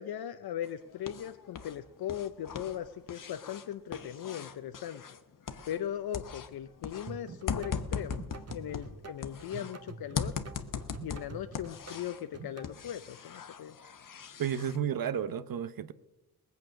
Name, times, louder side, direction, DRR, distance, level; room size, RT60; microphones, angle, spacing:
voice 1, 0.0-5.0 5.7-8.2 8.5-10.3 11.0-13.8, left 10 dB, 75° left, 0.6 m, -39 dB
sound 1, 0.6-1.8 2.0-5.9 6.1-9.7 10.2-12.3 12.6-14.8, left 6 dB, 55° left, 1.0 m, -39 dB
sound 2, 7.1-12.7, right 4 dB, 40° right, 1.1 m, -47 dB
voice 2, 14.4-15.9, right 8 dB, 65° right, 0.9 m, -32 dB
19.5 x 8.1 x 6.4 m
cardioid pair, 60°, 37 cm